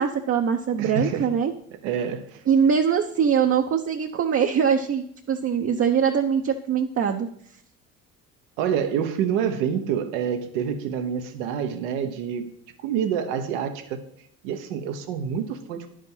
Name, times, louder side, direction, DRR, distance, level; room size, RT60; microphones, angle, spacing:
voice 1, 0.0-1.5 2.5-7.3, right 7 dB, 40° right, 3 dB, 0.8 m, -22 dB
voice 2, 0.8-1.4 1.8-2.4 8.6-12.5 12.8-14.0 14.4-15.9, right 8 dB, 85° right, 7 dB, 1.2 m, -27 dB
10.5 x 5.2 x 5.6 m, 0.67 s
supercardioid pair, 80°, 35 cm